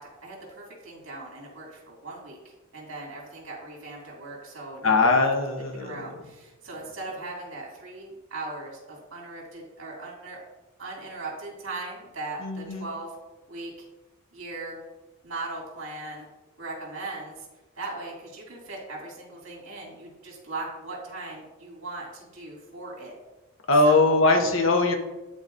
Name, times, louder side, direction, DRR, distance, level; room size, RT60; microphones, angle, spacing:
voice 1, 0.0-2.4 2.7-5.2 5.8-10.4 10.8-13.1 13.5-13.9 14.3-14.8 15.2-16.3 16.6-17.4 17.8-23.2 23.8-24.1, right 2 dB, 65° right, -3 dB, 2.3 m, -38 dB
voice 2, 4.8-6.1 12.4-12.9 23.7-25.0, left 2 dB, 65° left, 4 dB, 0.8 m, -21 dB
11.0 x 4.0 x 2.5 m, 1.1 s
head